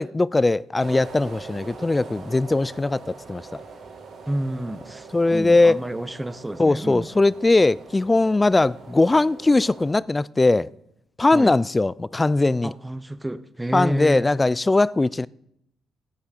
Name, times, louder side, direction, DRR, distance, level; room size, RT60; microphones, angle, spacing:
voice 1, 0.0-3.6 5.1-5.8 6.6-10.7 11.2-12.7 13.7-15.3, left 2 dB, 20° left, 0.3 m, -20 dB
sound 1, 0.8-9.9, right 4 dB, 65° right, 3.9 m, -43 dB
voice 2, 4.3-7.1 11.3-11.6 12.6-14.3, right 1 dB, 10° right, 0.7 m, -30 dB
14.5 x 8.7 x 5.2 m
cardioid pair, 90°, 0 cm